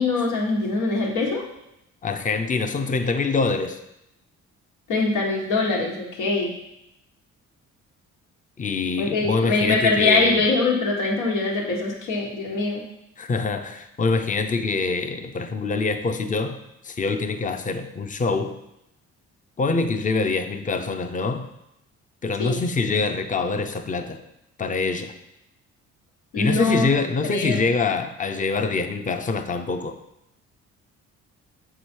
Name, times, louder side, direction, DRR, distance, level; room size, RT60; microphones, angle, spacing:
voice 1, 0.0-1.4 4.9-6.5 9.0-12.8 22.4-22.6 26.3-26.9 27.2-27.7, left 3 dB, 85° left, -1 dB, 1.6 m, -23 dB
voice 2, 2.0-3.8 8.6-10.4 13.2-16.6 16.8-18.6 19.6-21.5 22.2-24.2 24.6-25.1 26.4-30.0, left 4 dB, 25° left, 8 dB, 0.7 m, -25 dB
7.2 x 5.0 x 4.5 m, 0.84 s
cardioid pair, 90°, 30 cm